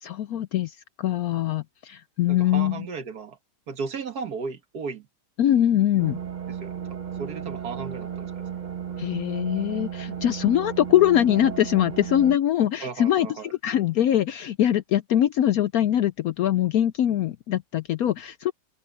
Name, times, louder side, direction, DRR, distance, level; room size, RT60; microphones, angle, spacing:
voice 1, 0.0-2.9 5.4-6.2 9.0-18.5, left 11 dB, 70° left, 0.9 m, -23 dB
voice 2, 2.3-3.4 3.7-5.0 6.5-6.7 7.2-8.3 12.8-13.5, right 5 dB, 60° right, 2.0 m, -34 dB
sound 1, 6.0-12.4, right 8 dB, 35° right, 0.8 m, -34 dB
open air
omnidirectional pair, 1.9 m